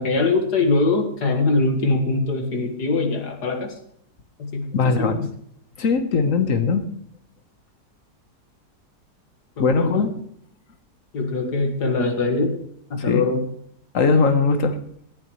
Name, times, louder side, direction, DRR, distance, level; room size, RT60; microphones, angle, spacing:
voice 1, 0.0-3.7 4.4-5.2 9.6-10.1 11.1-12.6 12.9-13.4, left 3 dB, 80° left, 5 dB, 2.3 m, -22 dB
voice 2, 4.7-5.3 5.8-6.9 9.6-10.1 13.0-13.2 13.9-14.8, left 4 dB, 55° left, 8 dB, 1.5 m, -20 dB
18.5 x 10.5 x 3.2 m, 0.68 s
omnidirectional pair, 1.7 m